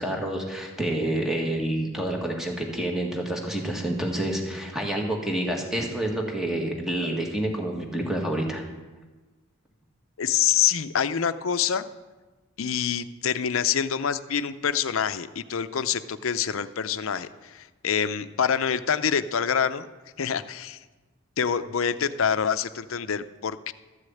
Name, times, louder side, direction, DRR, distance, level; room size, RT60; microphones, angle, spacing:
voice 1, 0.0-8.6, right 1 dB, ahead, 0 dB, 1.7 m, -28 dB
voice 2, 10.2-11.9 12.6-19.9 20.2-20.8 21.4-23.7, left 8 dB, 70° left, 13 dB, 0.5 m, -26 dB
13.0 x 6.5 x 8.5 m, 1.2 s
head